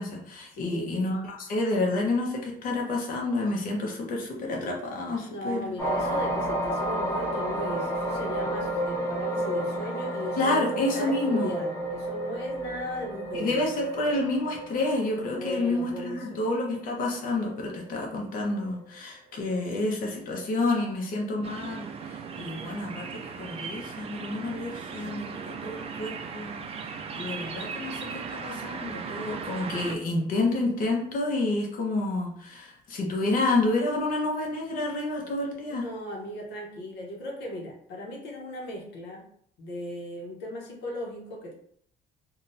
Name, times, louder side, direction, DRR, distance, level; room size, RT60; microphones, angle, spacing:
voice 1, 0.0-5.7 10.4-11.5 13.3-26.6 27.1-35.9, left 2 dB, 55° left, -1 dB, 0.8 m, -29 dB
voice 2, 0.5-0.9 5.3-10.7 10.9-13.6 15.3-16.4 35.7-39.3 39.6-41.5, left 1 dB, 85° left, -1 dB, 0.9 m, -37 dB
sound 1, 5.8-18.1 18.6-18.8, right 1 dB, 20° left, 1.1 m, -31 dB
sound 2, 21.4-29.9, right 6 dB, 35° right, 0.4 m, -37 dB
3.7 x 2.3 x 2.6 m, 0.65 s
cardioid pair, 110°, 17 cm